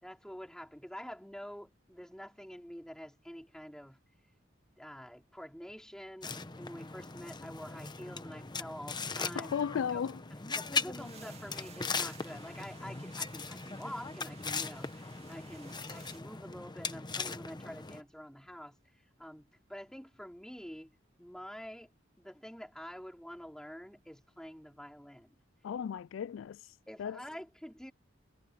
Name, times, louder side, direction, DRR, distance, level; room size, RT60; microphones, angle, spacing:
voice 1, 0.0-4.0 4.8-9.5 9.9-10.0 10.5-18.8 19.2-25.3 26.9-27.9, equal, 5° left, 4.2 m, -47 dB
sound 1, 6.2-18.0, left 4 dB, 25° left, 0.9 m, -39 dB
voice 2, 9.3-10.2 25.6-26.6 27.0-27.2, left 7 dB, 80° left, 0.3 m, -35 dB
sound 2, 11.0-16.2, right 6 dB, 35° right, 2.6 m, -57 dB
head